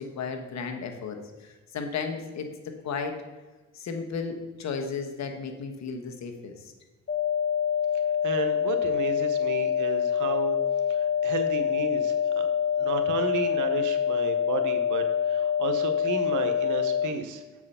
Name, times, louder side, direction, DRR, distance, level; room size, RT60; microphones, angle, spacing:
voice 1, 0.0-2.5 2.8-3.2 3.7-6.7, left 5 dB, 60° left, 4 dB, 1.2 m, -34 dB
sound 1, 7.1-17.1, left 8 dB, 40° left, 1.2 m, -26 dB
voice 2, 8.2-10.6 10.9-12.5 12.8-17.4, right 5 dB, 85° right, 7 dB, 1.0 m, -33 dB
7.5 x 4.8 x 5.6 m, 1.3 s
cardioid pair, 90°, 30 cm